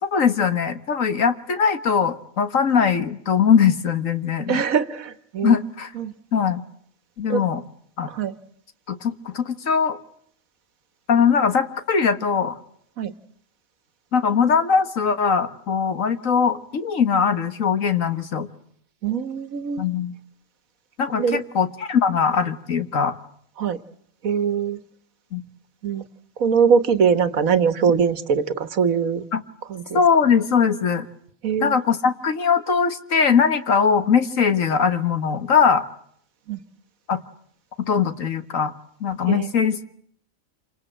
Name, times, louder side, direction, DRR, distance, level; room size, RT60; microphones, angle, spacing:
voice 1, 0.0-4.6 5.4-5.9 6.3-6.6 7.2-7.6 8.0-8.1 8.9-10.0 11.1-12.6 14.1-18.5 19.8-20.1 21.0-23.2 25.3-25.4 29.3-29.4 29.9-31.1 31.6-35.8 37.1-37.2 37.9-38.7 39.0-39.8, left 6 dB, 70° left, 10 dB, 1.9 m, -21 dB
voice 2, 4.5-5.6 6.0-6.1 7.3-7.4 8.1-8.3 13.0-13.1 19.0-19.9 21.2-21.4 23.6-23.8 24.2-24.8 25.8-26.0 26.4-29.2 29.7-30.0 31.4-31.8 36.5-36.6 39.3-39.5, right 6 dB, 80° right, 12 dB, 1.8 m, -22 dB
28.0 x 26.0 x 7.9 m, 0.66 s
omnidirectional pair, 1.4 m